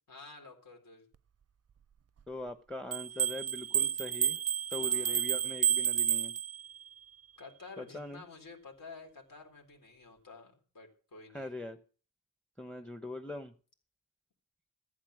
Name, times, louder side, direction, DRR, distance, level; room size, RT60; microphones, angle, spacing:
voice 1, 0.1-1.1 4.8-5.2 7.4-11.5, left 3 dB, 70° left, 2 dB, 3.9 m, -51 dB
voice 2, 2.3-4.4 4.7-6.3 7.8-8.2 11.3-11.8 12.6-13.5, left 2 dB, 5° left, 8 dB, 0.9 m, -42 dB
sound 1, 2.9-6.9, right 9 dB, 45° right, 0.5 m, -30 dB
14.0 x 8.4 x 6.4 m, 0.41 s
wide cardioid pair, 115°, 35 cm